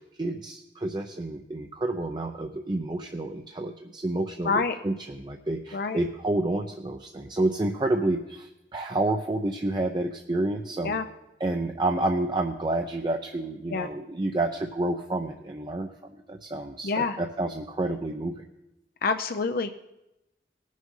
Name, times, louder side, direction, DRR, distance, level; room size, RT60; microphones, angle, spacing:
voice 1, 0.0-11.0 11.4-18.4, right 2 dB, 25° right, 3 dB, 0.6 m, -29 dB
voice 2, 4.4-4.8 5.7-6.0 10.8-11.1 13.7-13.9 16.8-17.2 19.0-19.7, left 4 dB, 55° left, 7 dB, 0.6 m, -27 dB
19.0 x 6.3 x 5.5 m, 0.93 s
head